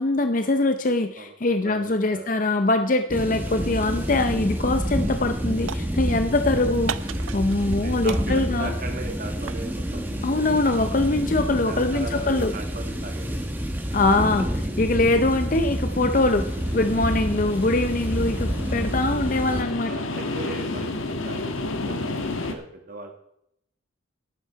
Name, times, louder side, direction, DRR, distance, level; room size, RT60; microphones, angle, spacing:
voice 1, 0.0-8.7 10.2-12.5 13.9-19.9, left 2 dB, 40° left, 7 dB, 0.6 m, -23 dB
voice 2, 1.2-2.3 7.6-10.2 11.2-13.5 18.3-18.5 19.9-23.1, right 2 dB, 45° right, 3 dB, 1.9 m, -38 dB
sound 1, 3.1-19.6, equal, 10° right, 1.0 m, -28 dB
sound 2, 4.5-4.8 5.1-6.4 6.9-7.8 8.1-9.7, right 9 dB, 80° right, 0.4 m, -36 dB
sound 3, 15.6-22.5, left 2 dB, 85° left, 1.3 m, -32 dB
11.0 x 9.6 x 4.7 m, 0.76 s
head